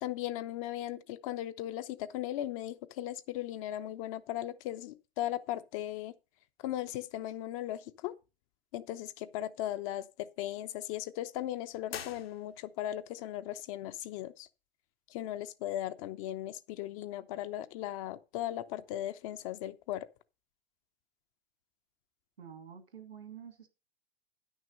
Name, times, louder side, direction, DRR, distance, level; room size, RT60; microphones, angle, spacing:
voice 1, 0.0-6.1 6.6-8.1 8.7-14.5 15.1-20.1, left 13 dB, 35° left, 0.6 m, -37 dB
sound 1, 11.9-12.9, left 8 dB, 70° left, 1.0 m, -45 dB
voice 2, 22.4-23.7, right 8 dB, 75° right, 2.3 m, -48 dB
10.5 x 6.3 x 5.3 m
figure-of-eight pair, 105°, 31 cm